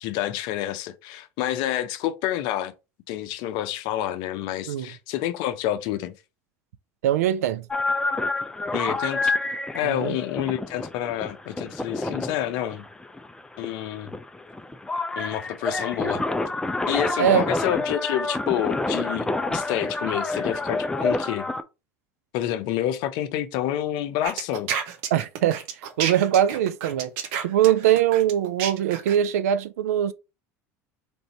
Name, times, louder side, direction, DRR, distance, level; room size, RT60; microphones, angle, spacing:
voice 1, 0.0-2.7 3.1-6.1 8.7-9.3 9.7-12.9 13.6-14.2 15.2-16.2 16.9-21.5 22.3-24.7, left 12 dB, 65° left, 0.6 m, -28 dB
voice 2, 7.0-7.7 9.8-10.2 17.2-17.5 25.1-25.6 26.0-27.1 27.4-30.1, right 11 dB, 85° right, 0.4 m, -22 dB
sound 1, 7.7-21.6, left 2 dB, 10° left, 0.4 m, -28 dB
sound 2, 24.2-29.3, right 8 dB, 70° right, 0.8 m, -30 dB
3.4 x 2.6 x 4.1 m
hypercardioid pair, 90°, 8 cm